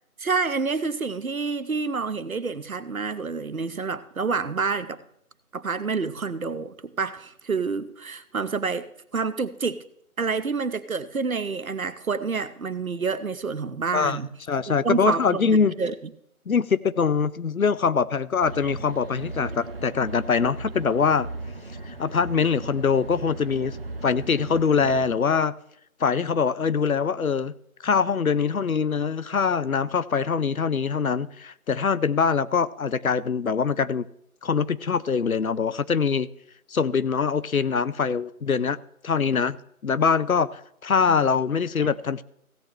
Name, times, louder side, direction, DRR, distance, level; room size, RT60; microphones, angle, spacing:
voice 1, 0.2-5.0 5.5-8.9 9.1-9.8 10.2-14.3 14.7-15.9 41.1-41.3 41.8-41.9, right 4 dB, 70° right, 0.9 m, -28 dB
voice 2, 14.5-15.7 16.5-21.3 21.9-23.8 24.0-25.5 26.0-27.5 27.8-34.1 34.4-36.3 36.7-38.8 39.0-39.6 39.8-42.2, left 6 dB, 70° left, 0.7 m, -23 dB
sound 1, 18.4-25.1, right 2 dB, 40° right, 0.9 m, -37 dB
16.0 x 8.8 x 3.2 m
figure-of-eight pair, 165°, 44 cm